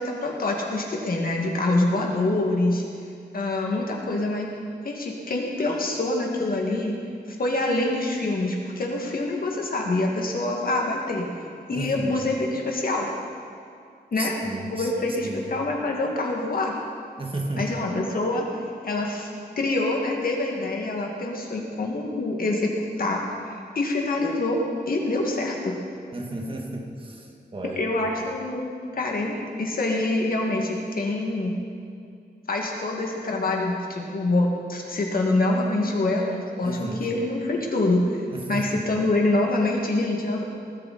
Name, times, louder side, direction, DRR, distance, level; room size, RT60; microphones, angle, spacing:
voice 1, 0.0-2.8 3.3-4.5 4.8-6.9 7.3-11.3 11.7-13.1 14.1-14.3 14.7-16.7 17.6-18.4 18.8-19.3 19.6-22.7 23.0-24.6 24.9-25.8 27.8-28.6 28.9-29.3 29.6-31.6 32.5-38.0 38.5-40.4, left 2 dB, 55° left, 0 dB, 2.1 m, -25 dB
voice 2, 11.7-12.2 14.2-14.9 15.2-15.4 17.2-17.7 26.1-27.9 36.6-37.0 38.3-38.9, right 2 dB, 30° right, 1 dB, 1.7 m, -33 dB
19.5 x 12.5 x 4.3 m, 2.4 s
wide cardioid pair, 150°, 18 cm